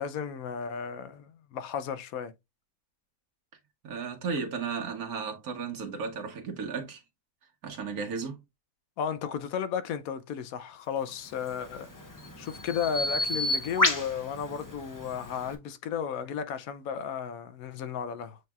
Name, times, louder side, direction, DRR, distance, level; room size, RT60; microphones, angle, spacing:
voice 1, 0.0-2.3 9.0-11.9 12.4-18.4, left 7 dB, 75° left, 1.0 m, -34 dB
voice 2, 3.8-7.0 7.6-8.4, right 5 dB, 85° right, 1.6 m, -34 dB
Bird vocalization bird call bird song, 11.3-15.6, left 2 dB, 25° left, 0.4 m, -31 dB
7.8 x 2.9 x 2.3 m
omnidirectional pair, 1.5 m